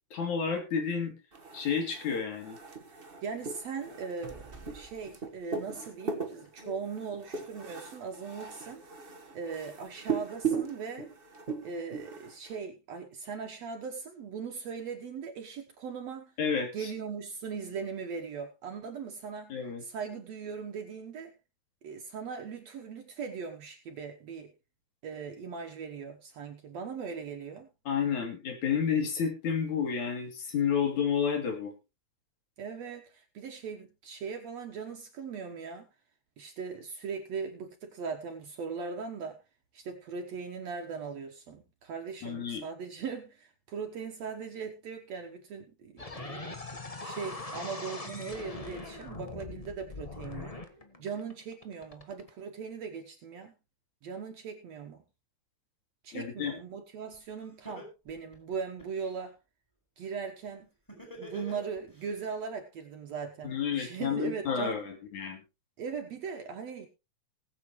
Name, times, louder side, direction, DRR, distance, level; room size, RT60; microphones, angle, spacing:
voice 1, 0.1-1.1 1.5-2.6 16.4-16.9 19.5-19.8 27.9-31.7 42.2-42.6 56.1-56.5 63.4-65.4, left 7 dB, 75° left, 4 dB, 4.3 m, -30 dB
sound 1, 1.3-12.6, right 5 dB, 35° right, 0.9 m, -38 dB
voice 2, 3.2-8.8 9.3-11.1 11.6-16.3 16.7-21.3 21.8-24.5 25.0-27.7 32.6-35.9 36.4-39.4 39.7-46.6 47.0-50.6 51.0-53.5 54.0-55.0 56.0-59.4 60.0-60.7 61.2-64.8 65.8-66.9, right 5 dB, 65° right, 4 dB, 2.2 m, -39 dB
sound 2, 46.0-52.3, left 2 dB, 55° left, 0.4 m, -41 dB
Laughter, 57.1-57.2 57.6-59.1 60.9-62.1, equal, 5° left, 4.9 m, -45 dB
20.0 x 8.1 x 3.1 m, 0.27 s
omnidirectional pair, 3.4 m